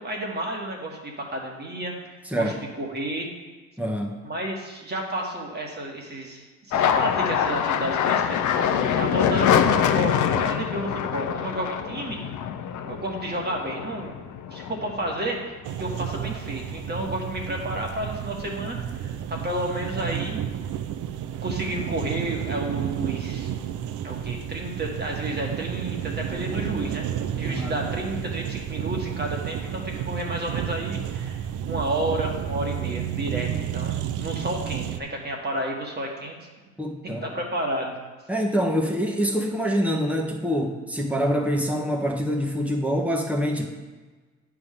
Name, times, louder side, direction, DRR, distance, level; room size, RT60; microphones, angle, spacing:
voice 1, 0.0-3.3 4.2-12.2 12.8-14.2 14.5-20.4 21.4-23.5 24.0-27.1 27.4-36.5 37.2-37.9, right 1 dB, 35° right, 0 dB, 1.7 m, -31 dB
voice 2, 3.8-4.2 27.5-27.7 36.8-37.3 38.3-43.6, equal, 5° right, 0 dB, 1.3 m, -25 dB
sound 1, 6.7-15.4 15.8-16.6 16.9-17.8, left 8 dB, 75° left, 0.6 m, -25 dB
sound 2, 15.6-35.0, right 10 dB, 80° right, 0.6 m, -31 dB
9.5 x 3.6 x 6.7 m, 1.3 s
cardioid pair, 90°, 30 cm